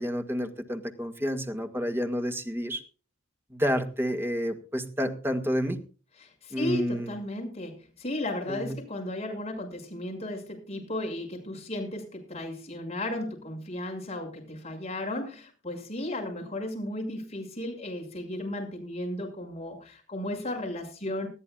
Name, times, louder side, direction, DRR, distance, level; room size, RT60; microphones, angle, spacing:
voice 1, 0.0-2.8 3.5-5.8 6.5-7.1 8.5-8.7, equal, 10° right, 6 dB, 1.9 m, -29 dB
voice 2, 6.2-21.3, left 1 dB, 30° left, 2 dB, 6.5 m, -35 dB
20.5 x 14.0 x 2.4 m, 0.36 s
head